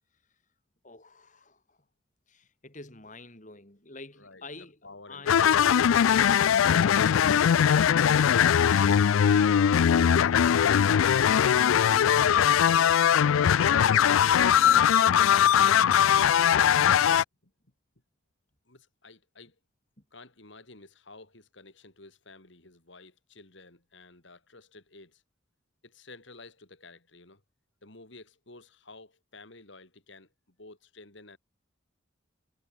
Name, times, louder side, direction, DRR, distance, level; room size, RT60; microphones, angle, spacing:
voice 1, 0.8-1.8 2.3-4.8 5.1-5.7 13.7-16.2, left 2 dB, 40° left, 3.3 m, -49 dB
voice 2, 4.8-5.8 17.4-17.5 18.7-19.6 20.1-25.2 25.8-27.4 27.8-31.4, left 3 dB, 65° left, 3.4 m, -51 dB
sound 1, 5.3-17.2, left 9 dB, 90° left, 0.4 m, -21 dB
head